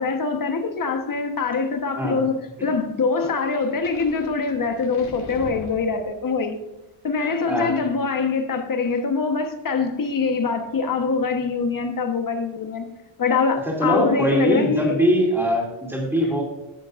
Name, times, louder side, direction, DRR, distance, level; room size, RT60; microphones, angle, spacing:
voice 1, 0.0-6.6 7.0-12.9 13.2-15.0, left 4 dB, 45° left, 1.2 m, -24 dB
voice 2, 1.9-2.2 2.6-2.7 7.2-7.8 13.7-16.4, equal, 5° right, 2.5 m, -22 dB
sound 1, 3.5-6.4, left 3 dB, 80° left, 2.5 m, -41 dB
13.0 x 8.2 x 2.5 m
wide cardioid pair, 170°, 48 cm